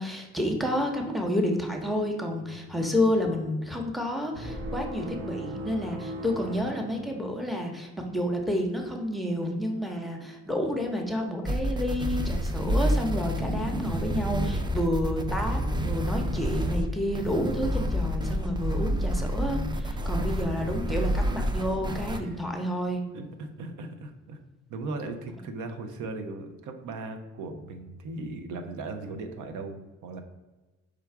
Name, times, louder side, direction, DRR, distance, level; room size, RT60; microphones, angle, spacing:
voice 1, 0.0-23.0, left 1 dB, ahead, 1 dB, 0.7 m, -30 dB
voice 2, 2.3-2.7 19.8-20.8 22.2-22.4 23.1-24.4 24.7-30.2, right 3 dB, 80° right, 6 dB, 0.6 m, -38 dB
sound 1, 4.3-7.7, right 1 dB, 45° right, 0.8 m, -38 dB
sound 2, 11.5-22.2, equal, 15° right, 0.4 m, -28 dB
4.9 x 2.3 x 4.5 m, 1.2 s
cardioid pair, 90°, 30 cm